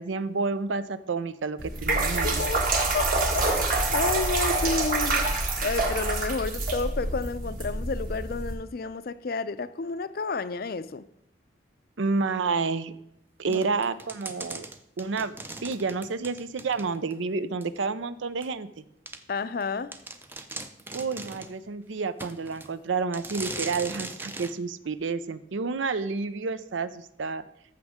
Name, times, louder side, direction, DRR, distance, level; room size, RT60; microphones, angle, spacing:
voice 1, 0.0-2.4 12.0-12.9 13.4-14.6 15.0-18.8 20.9-27.4, right 4 dB, 85° right, 14 dB, 0.6 m, -30 dB
sound 1, 1.6-8.5, right 2 dB, 45° right, 1.6 m, -26 dB
voice 2, 2.2-2.6 2.9-3.1 3.3-5.3 5.6-11.1 13.5-13.7 19.3-19.9, left 4 dB, 50° left, 14 dB, 0.4 m, -31 dB
sound 2, 13.5-17.2 17.6-17.7 18.4-18.5 19.1-19.2 19.6-19.7 19.9-21.6 22.2-22.7 23.1-24.6, right 2 dB, 10° right, 0.5 m, -39 dB
14.0 x 6.4 x 3.6 m, 0.81 s
head